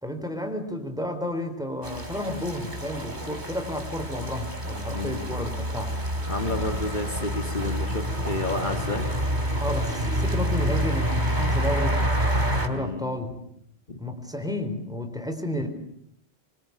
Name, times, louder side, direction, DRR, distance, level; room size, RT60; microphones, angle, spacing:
voice 1, 0.0-6.0 9.6-12.0 12.6-13.3 14.0-15.7, left 1 dB, 5° right, 6 dB, 4.5 m, -31 dB
sound 1, 1.8-12.7, equal, 45° right, 3.9 m, -28 dB
voice 2, 4.9-5.3 6.3-9.1 12.7-13.1 13.9-14.0, left 2 dB, 45° left, 4 dB, 2.6 m, -31 dB
27.0 x 24.0 x 8.4 m, 0.73 s
omnidirectional pair, 1.1 m